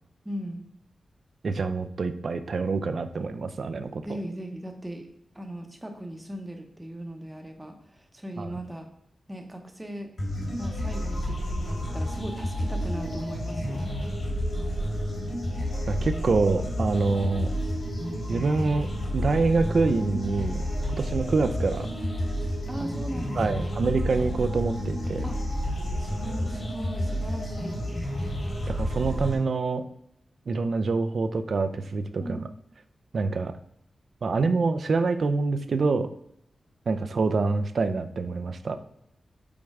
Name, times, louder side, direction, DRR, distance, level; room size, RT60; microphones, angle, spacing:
voice 1, 0.2-0.6 4.0-5.1 5.3-8.9 9.3-10.1 10.6-13.8 22.7-23.8 25.2-25.4 26.0-27.8 32.2-32.4, right 1 dB, 10° right, 3 dB, 0.8 m, -38 dB
voice 2, 1.4-4.2 8.4-8.6 13.6-13.7 15.9-17.5 18.3-20.6 20.9-21.9 23.4-25.2 28.7-29.8 30.5-32.4 33.1-33.6 34.2-36.1 36.9-38.8, right 4 dB, 55° right, 10 dB, 0.5 m, -26 dB
sound 1, 10.2-29.3, equal, 50° left, 2.7 m, -30 dB
5.3 x 4.6 x 4.8 m, 0.75 s
wide cardioid pair, 145°, 0 cm